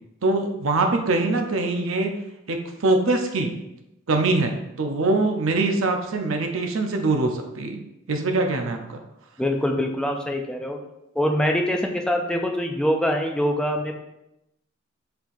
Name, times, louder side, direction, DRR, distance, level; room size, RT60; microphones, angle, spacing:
voice 1, 0.2-2.1 2.5-3.5 4.1-7.8 8.1-9.0, right 2 dB, 80° right, 4 dB, 0.6 m, -23 dB
voice 2, 9.4-10.8 11.2-14.0, equal, 5° left, 2 dB, 0.4 m, -24 dB
4.4 x 4.0 x 2.6 m, 0.88 s
head